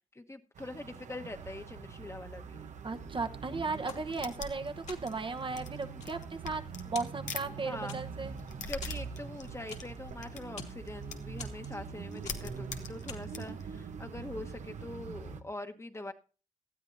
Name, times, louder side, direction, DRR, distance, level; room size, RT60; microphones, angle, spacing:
voice 1, 0.1-2.7 4.2-4.4 7.6-8.0 8.7-16.1, left 2 dB, 20° left, 6 dB, 1.3 m, -43 dB
sound 1, 0.6-15.4, right 6 dB, 80° right, 1.0 m, -44 dB
voice 2, 2.8-8.3, right 3 dB, 45° right, 6 dB, 1.1 m, -36 dB
sound 2, 3.9-4.5 4.9-5.3 5.8-6.7 6.9-7.5 7.9-8.3 8.8-10.1 10.4-10.8 11.4-11.9 12.2-12.6 13.1-13.4, left 4 dB, 70° left, 2.6 m, -47 dB
sound 3, 4.1-7.5 7.8-11.4 11.7-11.8 12.1-13.6, left 6 dB, 90° left, 1.2 m, -44 dB
18.5 x 13.0 x 2.7 m, 0.38 s
cardioid pair, 55°, 12 cm